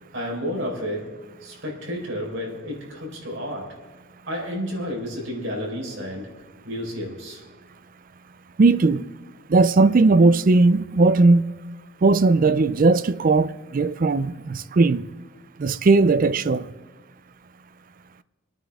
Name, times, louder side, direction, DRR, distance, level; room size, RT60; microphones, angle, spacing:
voice 1, 0.1-1.1 1.4-3.8 4.3-6.3 6.6-7.4, equal, 60° right, 4.4 m, -31 dB
voice 2, 8.6-9.0 9.5-11.4 12.0-15.0 15.6-16.7, right 3 dB, 40° right, 0.4 m, -18 dB
27.0 x 9.3 x 3.6 m
head